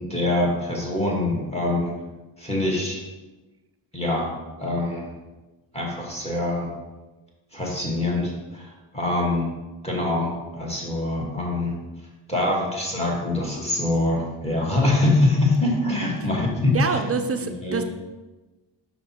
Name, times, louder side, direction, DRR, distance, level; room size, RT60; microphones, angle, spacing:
voice 1, 0.0-1.9 2.4-3.0 3.9-4.3 4.6-5.1 5.7-6.7 7.5-9.5 9.8-11.7 12.3-17.0 17.3-17.8, left 2 dB, 15° left, -3 dB, 2.1 m, -24 dB
voice 2, 16.7-17.8, right 5 dB, 35° right, 8 dB, 0.5 m, -25 dB
5.8 x 5.3 x 4.6 m, 1.2 s
cardioid pair, 95°, 45 cm